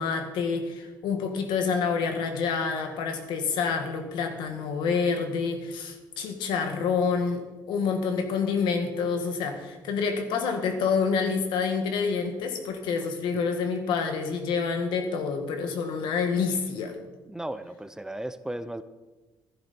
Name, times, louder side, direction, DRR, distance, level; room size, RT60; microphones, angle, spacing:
voice 1, 0.0-16.9, left 5 dB, 85° left, 6 dB, 1.9 m, -28 dB
voice 2, 13.0-13.6 17.3-18.8, right 1 dB, 5° right, 12 dB, 0.5 m, -36 dB
15.0 x 10.5 x 4.4 m, 1.2 s
cardioid pair, 130°, 8 cm